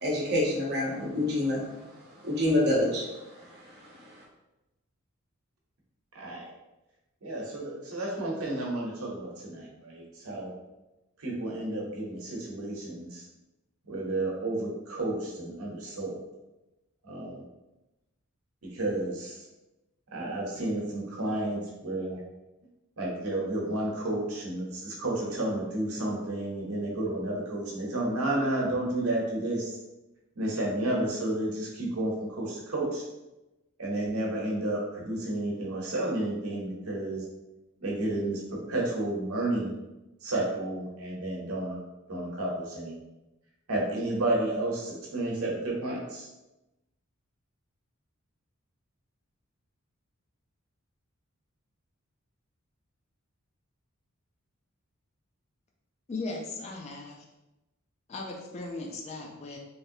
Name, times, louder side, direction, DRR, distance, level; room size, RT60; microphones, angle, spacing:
voice 1, 0.0-4.2, left 1 dB, 50° right, -4 dB, 0.9 m, -28 dB
voice 2, 6.1-6.4 7.2-10.5 11.2-13.2 13.9-16.2 17.0-17.4 18.6-19.4 20.1-22.2 23.0-29.8 30.4-33.1 33.8-37.2 37.8-39.7 40.2-41.8 42.1-42.9 43.7-46.3, right 1 dB, 75° right, -3 dB, 0.9 m, -31 dB
voice 3, 56.1-57.2 58.1-59.6, left 3 dB, 30° left, 0 dB, 0.4 m, -37 dB
3.2 x 2.6 x 2.7 m, 0.99 s
head